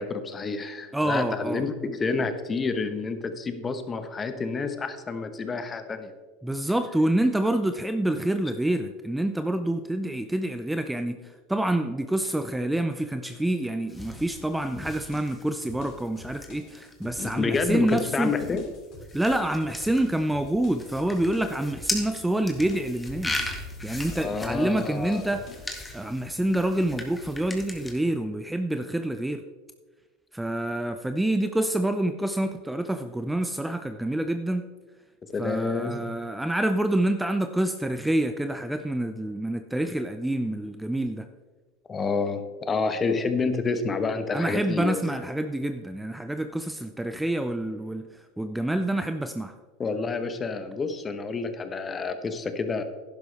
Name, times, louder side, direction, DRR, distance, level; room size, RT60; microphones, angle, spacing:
voice 1, 0.0-6.1 17.2-18.6 24.1-25.4 35.3-36.1 41.9-45.2 49.8-52.8, left 4 dB, 25° left, 9 dB, 1.2 m, -29 dB
voice 2, 0.9-1.6 6.4-11.2 11.5-18.3 19.1-23.5 23.8-25.4 25.9-29.4 30.3-34.6 35.4-41.3 44.3-48.1 48.4-49.5, right 1 dB, 5° right, 9 dB, 0.5 m, -27 dB
sound 1, 13.9-27.9, left 2 dB, 10° left, 1.9 m, -38 dB
sound 2, 14.8-25.7, left 4 dB, 50° left, 2.6 m, -47 dB
11.0 x 10.5 x 3.5 m, 1.4 s
hypercardioid pair, 95°, 0 cm